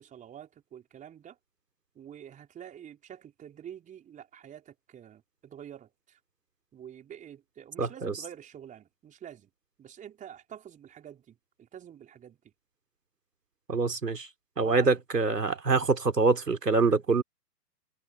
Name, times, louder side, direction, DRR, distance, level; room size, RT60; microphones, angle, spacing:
voice 1, 0.0-1.4 1.9-6.2 6.7-9.5 9.8-12.4 14.6-14.9, right 9 dB, 15° right, 4.5 m, -47 dB
voice 2, 7.8-8.1 13.7-14.3 14.6-17.2, right 4 dB, 75° right, 3.6 m, -25 dB
figure-of-eight pair, 120°, 48 cm